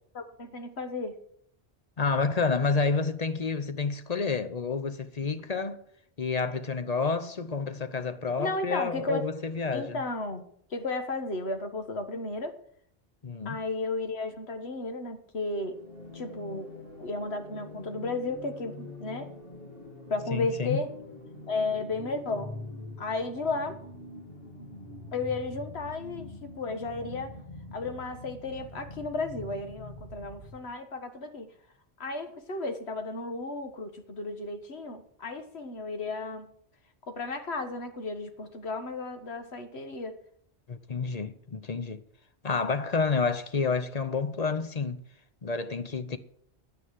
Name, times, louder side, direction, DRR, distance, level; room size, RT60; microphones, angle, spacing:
voice 1, 0.1-1.2 8.4-9.2 9.7-10.4 10.7-12.5 13.4-15.8 16.1-16.7 17.0-19.3 20.1-20.9 21.5-22.5 23.0-23.8 25.1-26.3 26.6-27.3 27.7-31.5 32.0-36.5 37.1-40.2, left 3 dB, 75° left, 1.7 m, -33 dB
voice 2, 2.0-5.8 6.2-10.0 13.2-13.6 20.3-20.8 40.7-42.0 42.4-45.0 45.4-46.2, left 4 dB, 40° left, 0.8 m, -29 dB
sound 1, 15.7-30.7, left 2 dB, 60° left, 3.5 m, -44 dB
11.0 x 9.7 x 7.6 m
omnidirectional pair, 1.1 m